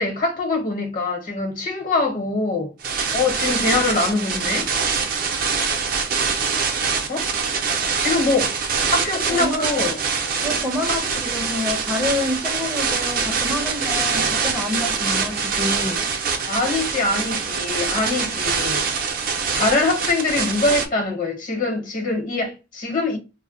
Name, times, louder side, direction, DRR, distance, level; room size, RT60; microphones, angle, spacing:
voice 1, 0.0-2.7 3.1-4.7 7.1-7.3 8.0-8.5 8.9-10.0 16.5-18.8 19.5-23.2, left 3 dB, 50° left, 1.0 m, -23 dB
sound 1, 2.8-20.9, right 5 dB, 55° right, 0.5 m, -24 dB
voice 2, 9.3-9.7 10.4-16.0, left 2 dB, 5° right, 0.5 m, -27 dB
2.2 x 2.1 x 3.7 m
head